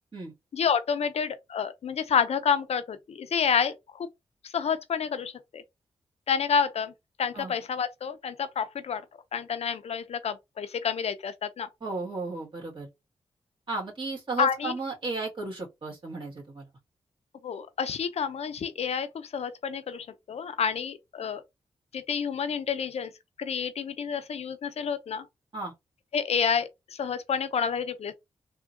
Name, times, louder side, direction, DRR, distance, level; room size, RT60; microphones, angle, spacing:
voice 1, 0.5-4.1 4.4-5.6 6.3-6.9 7.2-9.0 9.3-11.7 14.4-14.7 17.4-21.4 21.9-23.1 23.4-25.3 26.1-28.1, left 7 dB, 65° left, 0.5 m, -29 dB
voice 2, 11.8-12.9 13.7-16.7 25.5-25.7, right 3 dB, 45° right, 1.8 m, -34 dB
3.5 x 2.2 x 2.6 m
cardioid pair, 50°, 11 cm